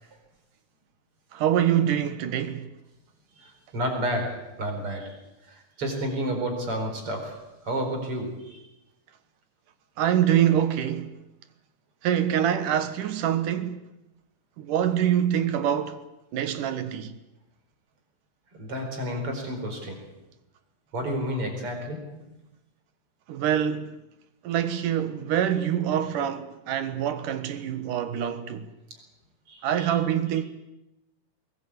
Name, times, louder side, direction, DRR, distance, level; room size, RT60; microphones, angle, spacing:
voice 1, 1.3-2.7 10.0-11.2 12.0-13.9 14.6-16.0 16.3-17.2 23.3-24.0 24.4-28.7 29.6-30.5, right 10 dB, 80° right, 3.0 m, -25 dB
voice 2, 3.4-8.6 18.5-20.1 20.9-22.3 28.9-29.0 29.5-30.0, equal, 45° right, 5.3 m, -31 dB
21.5 x 19.0 x 8.6 m
omnidirectional pair, 3.7 m